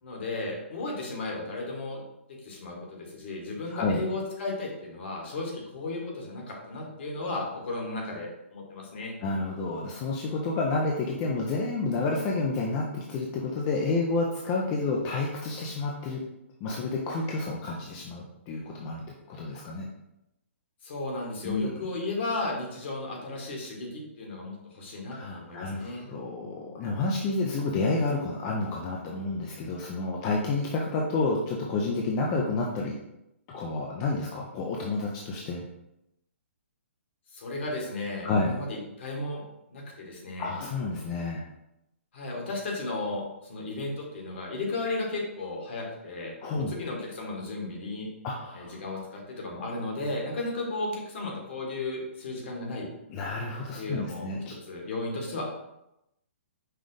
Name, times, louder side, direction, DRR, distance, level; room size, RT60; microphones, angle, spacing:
voice 1, 0.0-2.0 2.4-9.1 20.8-26.1 37.3-39.4 39.7-40.5 42.1-48.1 48.5-52.9 53.7-54.3 54.6-55.4, left 2 dB, 55° left, -1 dB, 1.7 m, -34 dB
voice 2, 3.7-4.0 9.2-16.2 16.6-19.9 21.4-21.7 25.1-33.0 33.5-35.6 38.2-38.5 40.4-41.4 46.4-46.7 48.2-48.7 53.1-54.6, left 3 dB, 30° left, -2 dB, 0.6 m, -30 dB
5.4 x 2.4 x 3.8 m, 0.86 s
hypercardioid pair, 145°, 7 cm